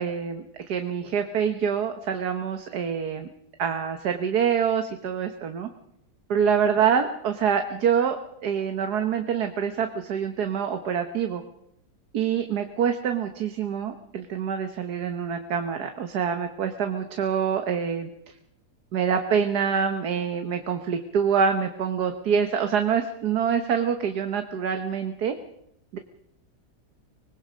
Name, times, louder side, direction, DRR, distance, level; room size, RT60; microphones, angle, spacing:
voice 1, 0.0-3.3 3.6-5.7 6.3-8.2 8.4-11.4 12.1-18.1 18.9-25.3 25.9-26.0, right 7 dB, 75° right, 6 dB, 1.7 m, -26 dB
25.5 x 20.0 x 5.1 m, 0.76 s
omnidirectional pair, 1.7 m